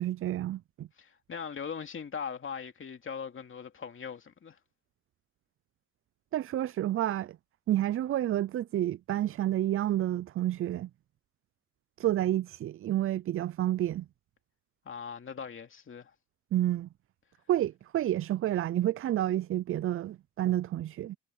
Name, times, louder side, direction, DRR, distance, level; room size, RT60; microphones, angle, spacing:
voice 1, 0.0-0.9 6.3-7.4 7.7-10.9 12.0-14.1 16.5-16.9 17.5-21.2, right 13 dB, 45° right, 0.4 m, -29 dB
voice 2, 1.0-4.6 14.8-16.1, left 6 dB, 40° left, 2.6 m, -40 dB
cardioid pair, 90°, 30 cm